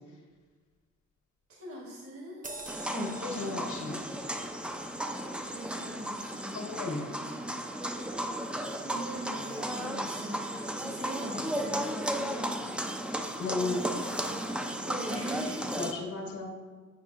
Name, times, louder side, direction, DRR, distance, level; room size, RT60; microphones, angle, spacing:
voice 1, 1.5-2.5 5.5-6.7 8.8-12.6 14.8-15.7, right 1 dB, 50° right, -3 dB, 1.2 m, -41 dB
sound 1, 2.4-7.4 7.8-8.0, right 2 dB, 25° right, 0.8 m, -48 dB
sound 2, 2.7-15.9, right 1 dB, 5° right, 0.4 m, -35 dB
voice 2, 2.9-4.0 6.5-7.1 13.4-13.8 15.8-16.5, left 3 dB, 75° left, 0 dB, 1.3 m, -34 dB
8.3 x 5.2 x 2.5 m, 1.5 s
cardioid pair, 90°, 30 cm